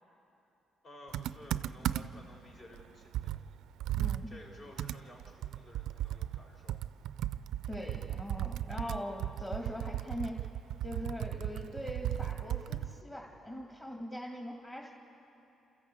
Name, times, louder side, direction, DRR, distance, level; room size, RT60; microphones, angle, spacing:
voice 1, 0.8-3.4 4.3-6.8 7.8-8.0, left 1 dB, 50° left, -1 dB, 5.2 m, -54 dB
Computer keyboard, 1.1-2.3 2.7-2.8 3.1-13.0, right 12 dB, 85° right, 0.4 m, -36 dB
voice 2, 4.0-4.3 7.7-10.4 10.8-14.9, left 1 dB, 20° left, -1 dB, 2.3 m, -41 dB
28.0 x 14.0 x 8.6 m, 2.9 s
cardioid pair, 90°, 0 cm